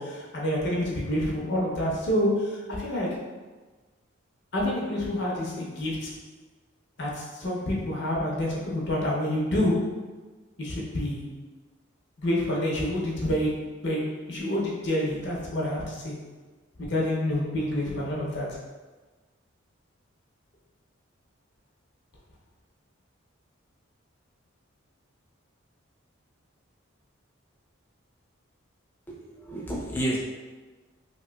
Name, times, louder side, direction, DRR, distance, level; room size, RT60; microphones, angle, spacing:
voice 1, 0.0-3.2 4.5-6.2 7.0-10.0 10.6-11.3 12.2-16.2 16.8-18.6, left 1 dB, 55° left, -4 dB, 0.6 m, -28 dB
voice 2, 29.1-30.2, right 1 dB, 10° left, -4 dB, 0.4 m, -31 dB
3.2 x 2.9 x 2.2 m, 1.3 s
head